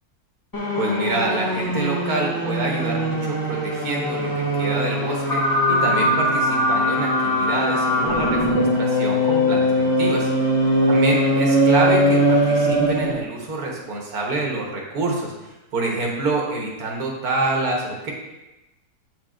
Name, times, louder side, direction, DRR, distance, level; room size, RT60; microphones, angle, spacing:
sound 1, 0.5-13.2, equal, 15° left, 0.8 m, -21 dB
voice 1, 0.8-10.3 10.9-15.3 15.7-18.1, right 2 dB, 80° right, -1 dB, 1.7 m, -26 dB
8.4 x 4.7 x 2.5 m, 0.99 s
omnidirectional pair, 1.6 m